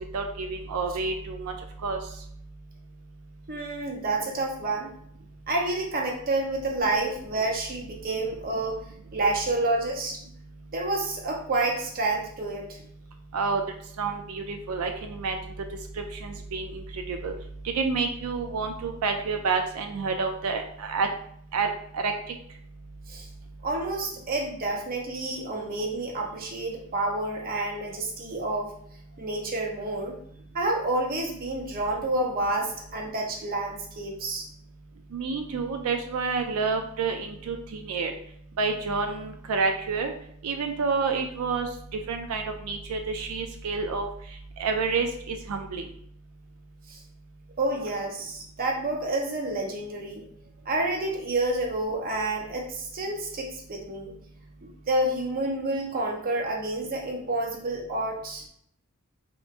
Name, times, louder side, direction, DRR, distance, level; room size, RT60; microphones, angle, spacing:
voice 1, 0.1-1.5 1.8-2.0 13.3-13.6 14.0-15.4 16.2-17.3 17.7-21.1 21.5-22.1 35.1-38.1 38.6-40.1 40.4-41.7 42.1-44.1 44.6-45.8, right 4 dB, 90° right, 5 dB, 0.4 m, -29 dB
voice 2, 3.5-4.9 5.5-8.8 9.1-10.2 10.7-12.8 23.1-23.3 23.6-28.7 29.2-30.2 30.5-34.5 46.9-47.0 47.6-50.2 50.7-54.1 54.6-58.4, right 2 dB, 45° right, 1 dB, 0.6 m, -29 dB
3.4 x 2.9 x 2.5 m, 0.66 s
head